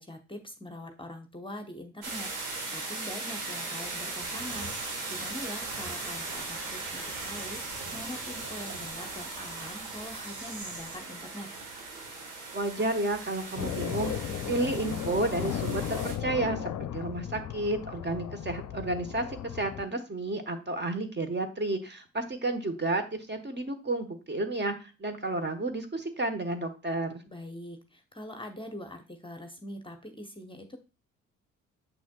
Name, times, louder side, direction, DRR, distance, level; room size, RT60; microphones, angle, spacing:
voice 1, 0.0-11.5 14.3-14.5 27.3-30.8, left 1 dB, 15° left, 6 dB, 1.0 m, -43 dB
sound 1, 2.0-16.1, right 3 dB, 80° right, 1.5 m, -38 dB
sound 2, 4.2-11.0, right 2 dB, 50° right, 1.4 m, -48 dB
voice 2, 12.5-19.2 19.5-27.2, right 2 dB, 25° right, 7 dB, 1.3 m, -31 dB
sound 3, 13.6-19.9, left 10 dB, 50° left, 0.7 m, -35 dB
7.3 x 6.1 x 2.3 m, 0.31 s
hypercardioid pair, 45°, 38 cm